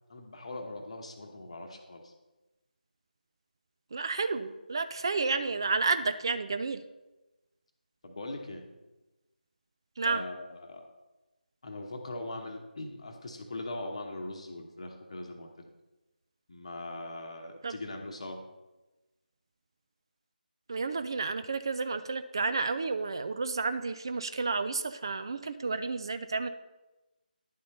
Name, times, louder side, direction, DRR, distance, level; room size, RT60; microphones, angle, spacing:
voice 1, 0.1-2.1 8.0-8.6 10.0-10.9 11.6-15.7 16.5-18.4, left 2 dB, 40° left, 2 dB, 1.0 m, -41 dB
voice 2, 3.9-6.8 10.0-10.2 17.6-17.8 20.7-26.5, right 4 dB, 30° right, 11 dB, 0.3 m, -31 dB
10.5 x 4.3 x 5.3 m, 1.1 s
figure-of-eight pair, 160°, 5 cm